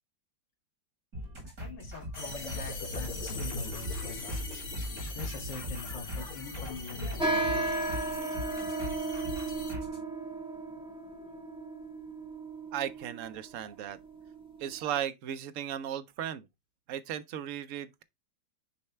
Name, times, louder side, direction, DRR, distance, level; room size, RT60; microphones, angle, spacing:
sound 1, 1.1-10.0, equal, 50° right, 4.1 m, -40 dB
voice 1, 1.4-4.4 5.2-7.7 11.1-11.4, left 5 dB, 70° left, 2.4 m, -44 dB
sound 2, 2.1-9.7, left 3 dB, 45° left, 1.5 m, -40 dB
sound 3, 7.2-15.0, right 2 dB, 5° right, 1.4 m, -35 dB
voice 2, 12.7-14.0 14.6-16.5 16.9-18.0, right 10 dB, 70° right, 0.7 m, -36 dB
9.8 x 3.3 x 3.1 m
omnidirectional pair, 2.0 m